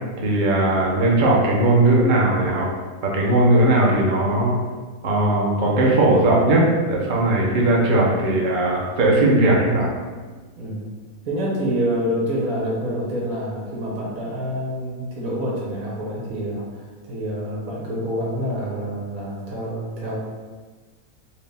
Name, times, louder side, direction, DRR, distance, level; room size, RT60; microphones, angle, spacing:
voice 1, 0.2-2.7 3.0-4.6 5.0-6.6 6.9-9.9, right 2 dB, 45° right, -3 dB, 0.7 m, -18 dB
voice 2, 11.2-20.1, equal, 70° right, -5 dB, 1.5 m, -27 dB
4.7 x 2.4 x 3.4 m, 1.4 s
omnidirectional pair, 1.5 m